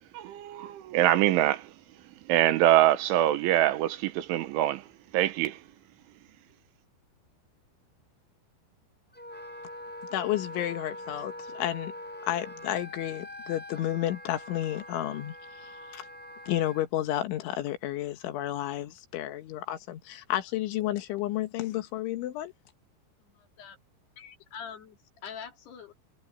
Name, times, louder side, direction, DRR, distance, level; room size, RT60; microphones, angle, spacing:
voice 1, 0.1-1.7 2.3-4.9 5.1-5.6, right 13 dB, 90° right, 3.8 m, -24 dB
Wind instrument woodwind instrument, 9.2-16.9, left 1 dB, ahead, 4.6 m, -43 dB
voice 2, 10.1-11.9 12.3-15.3 15.6-16.1 16.4-22.5, left 13 dB, 90° left, 4.0 m, -31 dB
voice 3, 23.2-23.8 24.2-25.9, left 7 dB, 65° left, 5.0 m, -44 dB
omnidirectional pair, 5.3 m